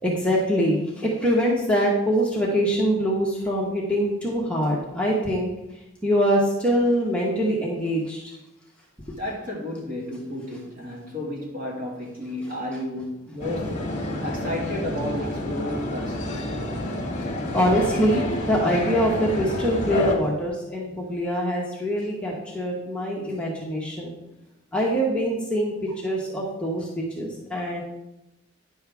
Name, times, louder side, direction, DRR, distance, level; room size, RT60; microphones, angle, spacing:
voice 1, 0.0-5.5 6.0-8.3 17.5-24.2 24.7-27.8, equal, 5° left, -4 dB, 1.3 m, -24 dB
voice 2, 9.1-16.5, left 1 dB, 45° right, -3 dB, 2.2 m, -33 dB
sound 1, 13.4-20.2, left 1 dB, 40° left, 1.7 m, -29 dB
10.0 x 6.7 x 3.5 m, 0.90 s
head